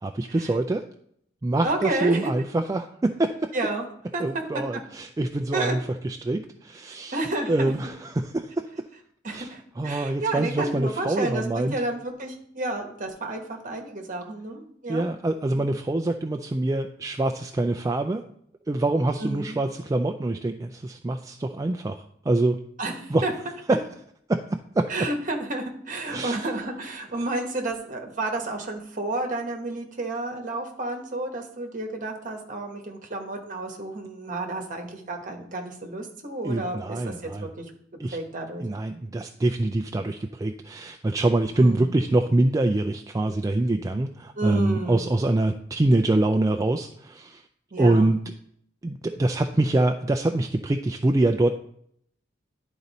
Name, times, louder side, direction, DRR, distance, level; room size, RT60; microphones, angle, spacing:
voice 1, 0.0-0.8 1.4-3.5 4.2-7.2 7.5-8.7 9.3-9.5 9.8-11.8 14.9-18.2 18.7-22.6 23.1-23.2 23.7-23.8 24.3-24.9 26.1-26.4 36.4-37.5 38.0-38.2 38.6-47.4 47.8-48.2 48.8-51.5, right 2 dB, 20° right, 5 dB, 0.3 m, -25 dB
voice 2, 1.6-2.3 3.5-3.8 4.1-4.4 5.5-5.7 7.1-7.7 9.2-15.0 15.5-15.7 19.2-19.6 22.8-23.3 24.9-37.6 38.1-38.6 41.6-41.9 44.4-45.1 47.7-48.1, right 2 dB, 45° right, 3 dB, 1.3 m, -31 dB
11.0 x 3.9 x 4.1 m, 0.69 s
head